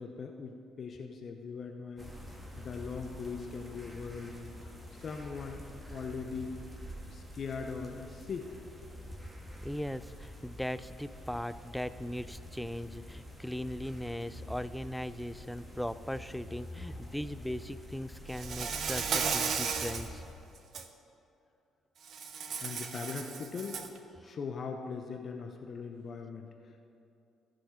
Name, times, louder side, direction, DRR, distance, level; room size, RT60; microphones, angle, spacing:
voice 1, 0.0-2.1 2.5-6.6 7.1-8.5 17.1-17.2 22.6-26.9, left 5 dB, 45° left, 4 dB, 0.7 m, -41 dB
sound 1, 2.0-20.3, left 1 dB, 10° right, 1.8 m, -47 dB
voice 2, 9.6-20.2, left 1 dB, 5° left, 14 dB, 0.4 m, -39 dB
Insect, 18.3-20.1 20.6-20.8 22.1-24.0, right 6 dB, 55° right, 0.8 m, -34 dB
14.5 x 5.4 x 5.6 m, 2.6 s
hypercardioid pair, 50°, 0 cm